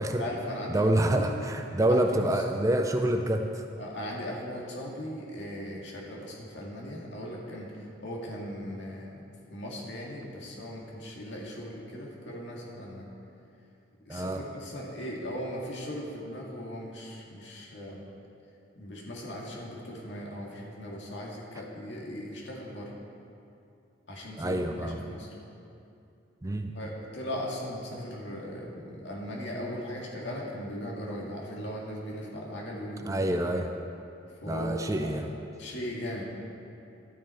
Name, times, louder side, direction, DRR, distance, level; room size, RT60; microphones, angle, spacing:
voice 1, 0.2-1.3 1.9-2.1 2.3-2.4 3.8-13.1 14.1-18.0 18.8-23.0 24.1-25.3 26.7-33.3 34.4-35.3 35.6-36.2, equal, 65° left, -3 dB, 2.0 m, -38 dB
voice 2, 0.7-3.7 14.1-14.4 24.4-25.0 26.4-26.7 33.1-33.7 34.5-35.3, right 1 dB, 15° right, 5 dB, 0.4 m, -27 dB
12.5 x 9.4 x 4.3 m, 2.6 s
head